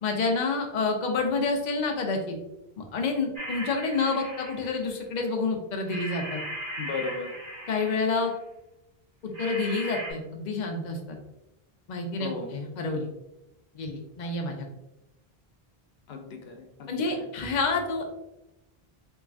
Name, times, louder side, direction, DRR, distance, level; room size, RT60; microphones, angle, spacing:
voice 1, 0.0-2.4 2.8-6.4 7.7-8.3 9.2-11.0 11.9-13.1 13.7-14.6 16.9-18.1, left 3 dB, 50° left, 2 dB, 0.7 m, -28 dB
sound 1, 3.4-4.9 5.9-8.3 9.3-10.1, equal, 40° right, 0.9 m, -38 dB
voice 2, 6.8-7.3 12.2-12.6 16.1-17.3, left 4 dB, 85° left, 4 dB, 0.9 m, -36 dB
3.6 x 3.0 x 2.4 m, 0.93 s
omnidirectional pair, 1.0 m